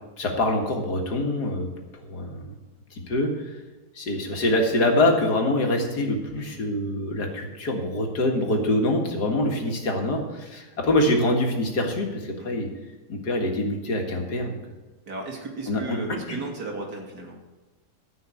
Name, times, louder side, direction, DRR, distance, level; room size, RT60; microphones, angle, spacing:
voice 1, 0.2-1.7 2.0-2.4 3.1-3.3 4.0-12.7 13.1-14.6 15.7-16.0 16.3-16.4, left 1 dB, 75° left, 2 dB, 2.4 m, -24 dB
voice 2, 15.1-17.4, right 3 dB, 80° right, 0 dB, 2.9 m, -35 dB
14.0 x 5.7 x 8.6 m, 1.2 s
omnidirectional pair, 1.7 m